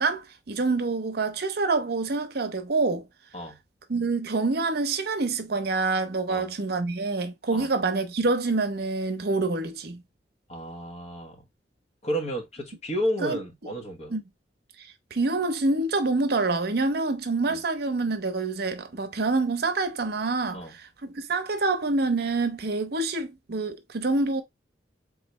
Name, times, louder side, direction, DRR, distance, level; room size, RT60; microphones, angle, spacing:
voice 1, 0.0-3.0 3.9-10.0 13.2-13.8 14.1-14.2 14.8-24.4, right 3 dB, 60° right, 0.7 m, -27 dB
voice 2, 10.5-11.4 12.0-14.1 17.5-17.6 20.5-20.7, equal, 40° left, 1.0 m, -32 dB
3.8 x 3.2 x 3.0 m
head